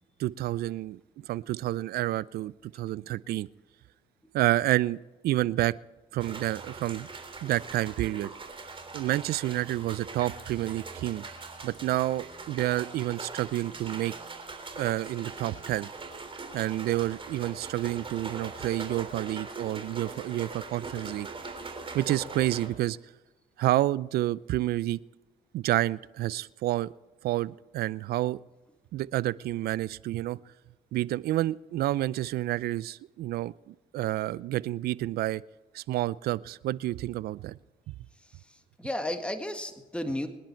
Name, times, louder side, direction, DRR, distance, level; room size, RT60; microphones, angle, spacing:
voice 1, 0.2-3.5 4.3-5.0 5.2-5.7 6.1-7.1 7.4-8.3 8.9-11.2 11.6-14.1 14.8-15.9 16.5-21.3 21.9-23.0 23.6-25.0 25.5-26.9 27.2-28.4 28.9-30.4 30.9-35.4 35.7-37.6 37.9-38.0, right 15 dB, 75° right, 21 dB, 0.4 m, -29 dB
sound 1, 6.2-22.7, right 3 dB, 35° right, 3.6 m, -41 dB
voice 2, 38.2-40.3, left 1 dB, 5° left, 6 dB, 1.8 m, -34 dB
25.0 x 10.5 x 4.5 m, 1.2 s
cardioid pair, 80°, 16 cm